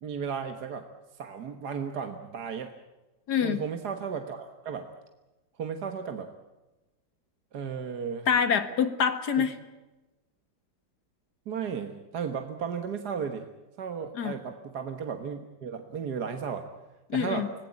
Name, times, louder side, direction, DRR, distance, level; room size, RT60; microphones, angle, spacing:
voice 1, 0.0-0.9 1.2-2.7 3.4-4.9 5.6-6.3 7.5-8.3 9.4-9.5 11.5-13.5 13.8-16.7 17.1-17.5, right 6 dB, 65° right, 6 dB, 1.9 m, -34 dB
voice 2, 3.3-3.6 8.3-9.6 14.2-14.4 17.1-17.5, left 7 dB, 65° left, 8 dB, 2.2 m, -25 dB
26.5 x 19.0 x 8.5 m, 1.1 s
omnidirectional pair, 1.9 m